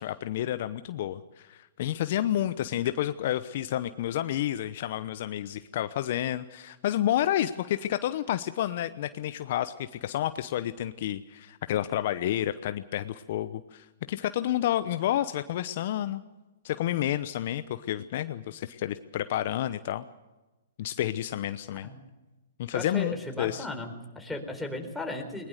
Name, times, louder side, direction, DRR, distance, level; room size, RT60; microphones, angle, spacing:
voice 1, 0.0-16.2 16.6-20.0 20.8-21.9 22.6-23.7, left 12 dB, 55° left, 12 dB, 0.9 m, -30 dB
voice 2, 22.7-25.5, left 2 dB, 5° left, 2 dB, 4.1 m, -36 dB
21.0 x 20.5 x 6.6 m, 1.1 s
hypercardioid pair, 125°, 0 cm